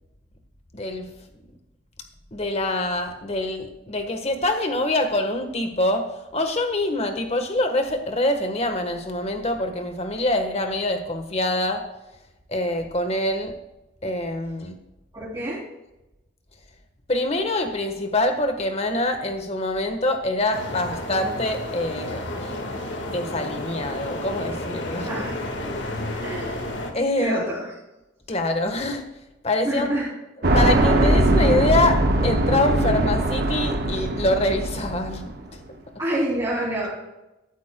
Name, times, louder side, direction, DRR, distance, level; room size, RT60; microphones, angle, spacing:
voice 1, 0.7-1.0 2.3-6.1 6.3-11.8 12.5-13.5 14.0-14.8 17.1-22.5 23.0-25.1 25.6-25.7 26.9-27.5 28.3-29.0 29.4-29.9 30.5-35.3, left 1 dB, 30° left, 6 dB, 1.3 m, -25 dB
voice 2, 15.1-15.6 25.1-25.4 26.1-26.6 27.2-27.7 29.6-30.1 36.0-36.9, right 1 dB, 20° right, -8 dB, 3.2 m, -27 dB
sound 1, 20.5-26.9, left 1 dB, 60° left, 1.8 m, -31 dB
sound 2, 30.4-35.4, right 1 dB, 50° right, 1.2 m, -21 dB
13.5 x 12.5 x 2.3 m, 0.96 s
head